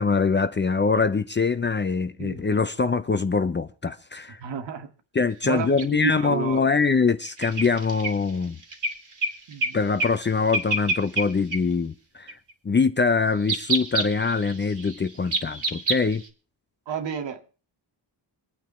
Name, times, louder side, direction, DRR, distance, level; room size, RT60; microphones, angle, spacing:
voice 1, 0.0-4.4 5.1-8.6 9.7-12.4 12.6-16.2, left 4 dB, 25° left, 0.7 m, -23 dB
voice 2, 2.2-2.6 4.4-4.9 5.4-5.7 6.0-6.7 9.5-9.8 16.9-17.4, right 7 dB, 75° right, 2.3 m, -31 dB
sound 1, 5.8-5.9 7.2-9.7 10.0-10.2 10.5-11.3 11.5-11.6 12.3-12.5 13.4-16.3, right 3 dB, 40° right, 3.2 m, -28 dB
26.5 x 9.2 x 3.3 m
wide cardioid pair, 135°, 44 cm